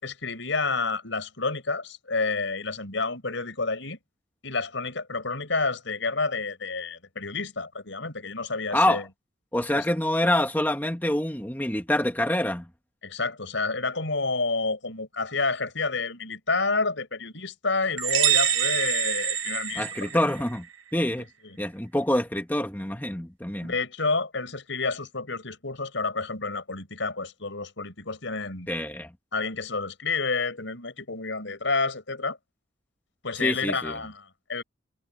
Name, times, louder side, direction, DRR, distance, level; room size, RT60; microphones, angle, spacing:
voice 1, 0.0-4.0 4.4-9.0 9.7-9.8 13.0-20.2 21.4-21.6 23.6-28.7 29.3-32.4 33.2-34.6, left 3 dB, 75° left, 4.6 m, -29 dB
voice 2, 8.7-9.0 9.5-12.7 19.7-20.7 20.9-21.3 21.6-23.7 28.7-29.1 33.4-33.9, left 1 dB, 10° left, 1.5 m, -26 dB
sound 1, 18.0-20.6, right 10 dB, 85° right, 1.4 m, -25 dB
head